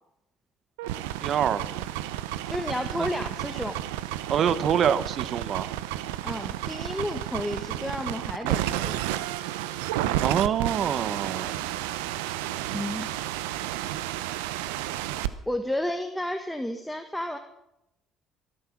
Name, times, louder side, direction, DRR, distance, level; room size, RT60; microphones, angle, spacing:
sound 1, 0.8-15.3, right 13 dB, 90° right, 0.7 m, -31 dB
voice 1, 1.2-1.9 4.3-5.7 10.2-11.6, right 8 dB, 55° right, 15 dB, 1.0 m, -25 dB
voice 2, 2.5-3.8 6.2-9.2 12.7-13.1 15.5-17.4, left 1 dB, 5° left, 5 dB, 1.5 m, -32 dB
23.5 x 9.7 x 6.1 m, 0.86 s
supercardioid pair, 70°, 0 cm